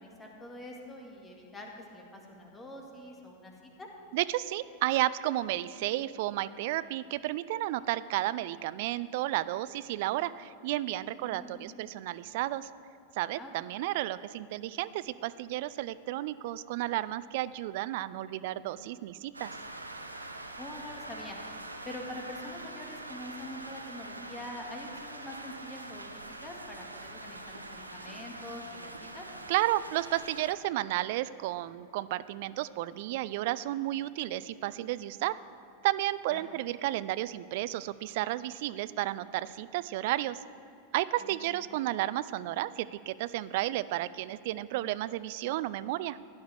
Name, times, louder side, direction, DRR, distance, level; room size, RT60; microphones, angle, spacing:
voice 1, 0.0-3.9 11.2-11.8 13.4-13.5 20.6-21.4 21.9-26.1 26.4-29.3 36.3-36.5 41.2-41.6, left 1 dB, 15° left, 0 dB, 1.8 m, -45 dB
voice 2, 4.1-12.7 13.1-19.6 29.5-35.4 35.8-40.4 40.9-46.2, right 15 dB, 50° right, 16 dB, 0.3 m, -32 dB
Rain, 19.3-30.5, right 2 dB, 85° right, 0.7 m, -44 dB
15.5 x 10.0 x 3.4 m, 2.7 s
figure-of-eight pair, 90°, 0 cm